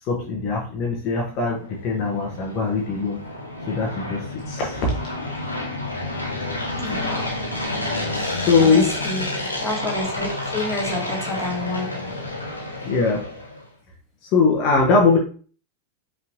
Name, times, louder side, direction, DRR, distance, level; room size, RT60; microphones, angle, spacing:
voice 1, 0.0-3.2 3.7-4.9 8.1-9.0 12.8-13.3 14.3-15.2, left 4 dB, 40° left, 1.0 m, -21 dB
sound 1, 1.3-13.6, left 1 dB, 80° left, 1.2 m, -30 dB
voice 2, 6.8-7.4 8.6-12.2, left 2 dB, 5° left, 2.2 m, -29 dB
5.4 x 3.3 x 2.7 m
figure-of-eight pair, 90°, 0 cm